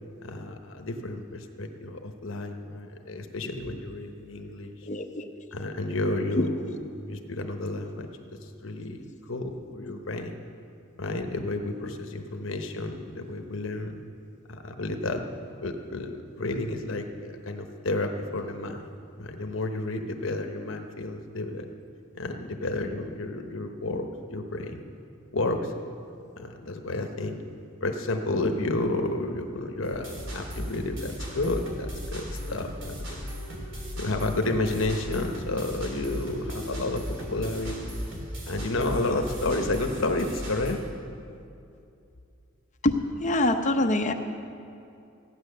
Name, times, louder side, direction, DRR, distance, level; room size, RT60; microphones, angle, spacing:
voice 1, 0.2-4.9 5.5-8.1 8.4-10.3 11.0-14.0 14.5-15.2 15.6-17.1 17.4-18.8 19.2-21.7 22.1-24.9 25.3-25.7 26.4-27.5 27.8-33.2 34.0-37.9 38.5-40.8, left 2 dB, 70° left, 5 dB, 1.0 m, -31 dB
voice 2, 4.9-5.3 6.4-6.5 42.8-44.1, left 1 dB, 35° left, 4 dB, 0.8 m, -25 dB
sound 1, 29.8-40.7, equal, 65° right, 3.2 m, -36 dB
15.5 x 9.2 x 6.6 m, 2.6 s
head